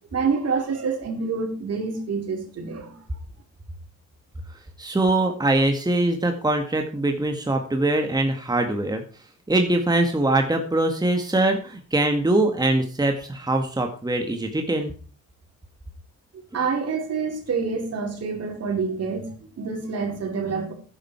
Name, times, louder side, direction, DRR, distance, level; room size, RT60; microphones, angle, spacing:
voice 1, 0.1-3.0 16.5-20.7, right 5 dB, 55° right, 4.2 m, -27 dB
voice 2, 4.8-9.0 9.5-14.9, right 2 dB, 15° right, 2.0 m, -22 dB
13.0 x 10.5 x 4.7 m
cardioid pair, 90°, 30 cm